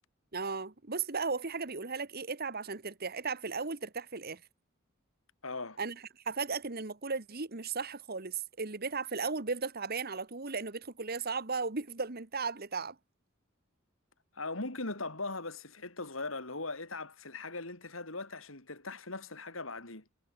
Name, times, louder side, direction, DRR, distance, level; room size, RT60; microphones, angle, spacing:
voice 1, 0.3-4.4 5.8-12.9, right 4 dB, 50° right, 1.6 m, -36 dB
voice 2, 5.4-5.8 14.3-20.0, left 3 dB, 80° left, 5.4 m, -39 dB
head